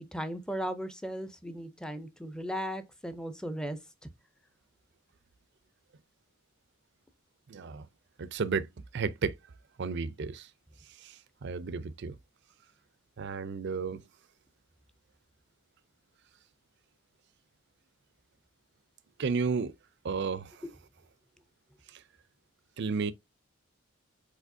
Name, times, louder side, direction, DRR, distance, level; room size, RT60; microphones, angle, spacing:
voice 1, 0.0-3.8 20.6-20.7, equal, 5° left, 0.5 m, -36 dB
voice 2, 7.5-7.9 8.2-8.7 8.9-9.3 9.8-10.5 11.0-12.1 13.2-14.0 19.2-19.7 20.0-20.6 22.8-23.1, right 5 dB, 60° right, 0.5 m, -32 dB
4.9 x 4.1 x 2.6 m
head